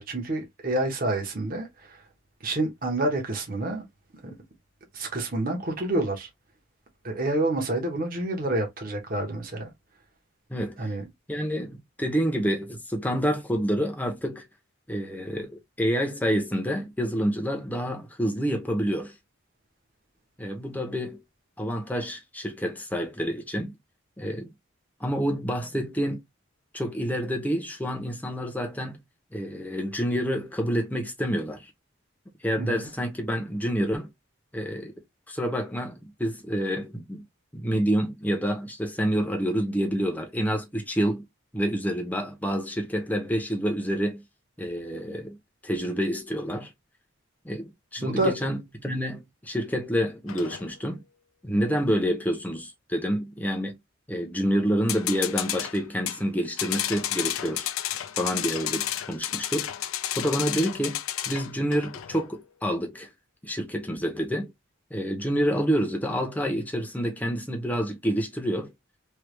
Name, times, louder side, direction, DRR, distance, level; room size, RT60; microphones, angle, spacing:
voice 1, 0.0-2.0 2.4-3.8 4.2-4.3 4.9-6.3 7.0-9.7 10.8-11.0 32.6-32.9 48.0-48.3, right 2 dB, 45° right, 0.9 m, -28 dB
voice 2, 10.5-10.9 11.3-14.4 14.9-19.1 20.4-21.2 21.6-23.7 24.2-24.5 25.0-26.2 26.7-29.0 29.3-31.7 32.4-34.1 34.5-34.9 35.3-37.2 37.5-41.2 41.5-44.2 44.6-45.4 45.6-46.7 47.4-51.0 51.4-53.8 54.1-57.7 58.2-59.7 60.2-61.0 61.3-63.1 63.4-64.5 64.9-68.7, equal, 10° left, 0.7 m, -28 dB
sound 1, 50.3-50.7 54.9-56.2 56.6-62.3, left 12 dB, 85° left, 0.4 m, -31 dB
3.3 x 2.3 x 3.1 m
head